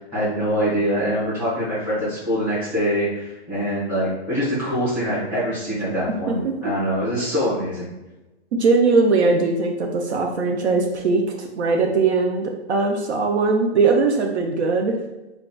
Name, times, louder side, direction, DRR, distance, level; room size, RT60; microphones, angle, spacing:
voice 1, 0.1-7.9, equal, 5° right, -13 dB, 1.4 m, -24 dB
voice 2, 6.3-6.7 8.5-15.1, right 4 dB, 70° right, 2 dB, 0.5 m, -20 dB
3.7 x 2.3 x 2.2 m, 1.0 s
hypercardioid pair, 170°, 35 cm